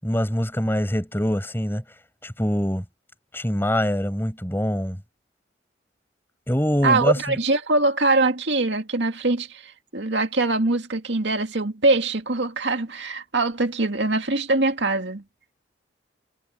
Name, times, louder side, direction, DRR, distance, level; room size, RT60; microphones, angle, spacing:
voice 1, 0.0-1.8 2.2-2.8 3.3-5.0 6.5-7.4, equal, 10° left, 7.4 m, -24 dB
voice 2, 6.8-15.2, right 2 dB, 75° right, 2.2 m, -23 dB
head